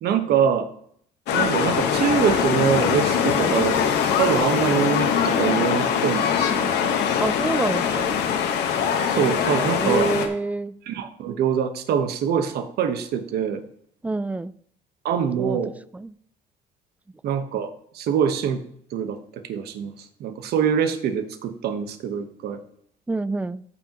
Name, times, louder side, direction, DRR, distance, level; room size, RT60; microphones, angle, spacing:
voice 1, 0.0-0.7 1.3-3.8 4.1-6.9 9.2-10.1 10.9-13.6 15.0-15.7 17.2-17.7 17.9-18.6 18.9-22.6, right 7 dB, 70° right, 1.2 m, -24 dB
sound 1, 1.3-10.3, left 7 dB, 80° left, 1.3 m, -22 dB
voice 2, 7.2-8.1 9.8-10.7 14.0-14.5 15.4-15.6 15.9-16.1 23.1-23.6, right 3 dB, 10° right, 0.3 m, -27 dB
14.0 x 6.0 x 3.0 m
cardioid pair, 110°, 17 cm